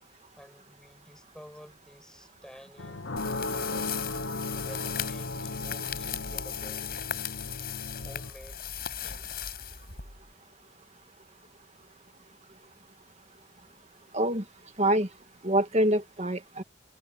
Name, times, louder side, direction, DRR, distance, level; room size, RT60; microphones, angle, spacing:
voice 1, 0.1-3.2 3.5-3.9 4.5-6.9 8.0-8.6 9.0-9.3, equal, 5° left, 6.6 m, -51 dB
sound 1, 2.8-8.3, left 2 dB, 65° left, 0.9 m, -36 dB
sound 2, 3.2-10.3, left 9 dB, 50° left, 6.1 m, -37 dB
voice 2, 14.1-14.4 14.8-15.1 15.4-16.6, right 1 dB, 35° right, 1.8 m, -25 dB
head